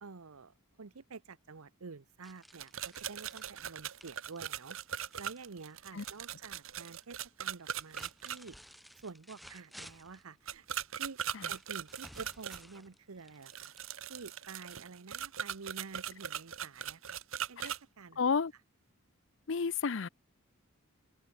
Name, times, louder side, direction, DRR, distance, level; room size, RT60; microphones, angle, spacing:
voice 1, 0.0-8.6 9.0-10.6 11.0-11.2 11.5-13.7 14.1-17.2 17.5-18.2, right 4 dB, 85° right, 0.9 m, -49 dB
sound 1, 2.2-6.2 6.4-7.0 7.6-10.3 11.5-14.2, equal, ahead, 4.4 m, -55 dB
sound 2, 2.5-8.4 10.5-12.6 13.4-17.8, right 9 dB, 70° right, 1.3 m, -40 dB
voice 2, 18.2-18.5 19.5-20.1, left 5 dB, 60° left, 0.6 m, -31 dB
open air
head